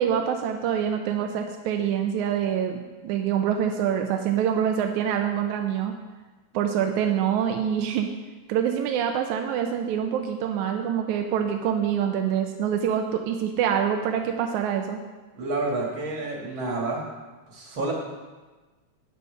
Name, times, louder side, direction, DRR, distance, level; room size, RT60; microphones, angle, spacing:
voice 1, 0.0-5.9 6.5-8.1 8.5-15.0, right 8 dB, 85° right, 4 dB, 2.0 m, -25 dB
voice 2, 15.3-17.0 17.5-17.9, right 2 dB, 45° right, -1 dB, 2.1 m, -29 dB
9.3 x 8.3 x 5.5 m, 1.3 s
omnidirectional pair, 3.4 m